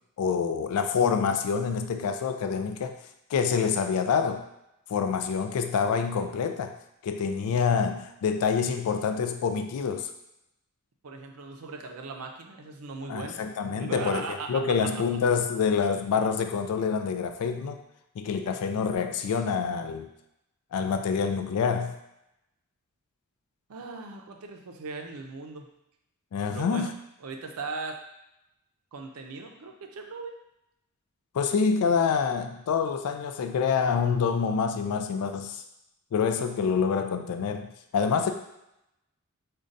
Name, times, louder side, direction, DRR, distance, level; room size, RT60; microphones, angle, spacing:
voice 1, 0.2-3.0 3.3-4.4 4.9-6.7 7.0-10.1 13.1-17.8 18.2-20.1 20.7-21.9 26.3-26.9 31.3-35.6 36.1-37.7 37.9-38.3, left 6 dB, 85° left, 7 dB, 0.3 m, -26 dB
voice 2, 11.0-13.4 13.8-14.6 23.7-25.7 26.5-26.9 27.2-28.0 28.9-30.3, right 4 dB, 75° right, 3 dB, 0.5 m, -38 dB
5.2 x 2.2 x 2.5 m, 0.84 s
head